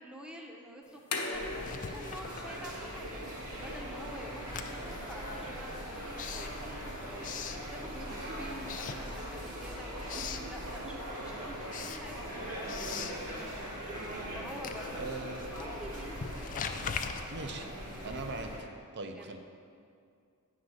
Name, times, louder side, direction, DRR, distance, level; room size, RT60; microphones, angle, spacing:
voice 1, 0.0-13.5 14.3-15.1 15.6-16.2 19.1-19.4, equal, 5° right, 0 dB, 0.7 m, -48 dB
sound 1, 0.8-7.5, left 3 dB, 80° left, 1.0 m, -43 dB
sound 2, 1.3-18.6, equal, 85° right, 1.9 m, -41 dB
Writing, 1.5-3.1 3.4-8.2 8.6-9.6 9.9-10.5 11.0-18.6, left 6 dB, 35° left, 0.3 m, -43 dB
voice 2, 14.9-15.5 17.3-17.7 18.0-18.7 18.9-19.4, right 3 dB, 50° right, 6 dB, 0.6 m, -40 dB
9.2 x 3.9 x 6.3 m, 2.4 s
head